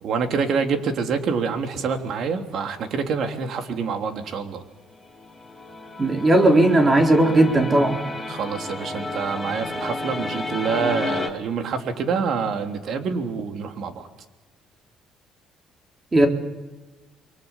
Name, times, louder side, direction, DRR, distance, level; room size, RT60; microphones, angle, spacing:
voice 1, 0.0-4.6 8.3-14.1, right 5 dB, 60° right, 5 dB, 3.5 m, -26 dB
sound 1, 4.8-11.3, left 2 dB, ahead, 6.3 m, -32 dB
voice 2, 6.0-8.0 16.1-16.3, right 1 dB, 25° right, 3 dB, 3.9 m, -17 dB
29.5 x 23.0 x 7.4 m, 1.2 s
cardioid pair, 100°, 0 cm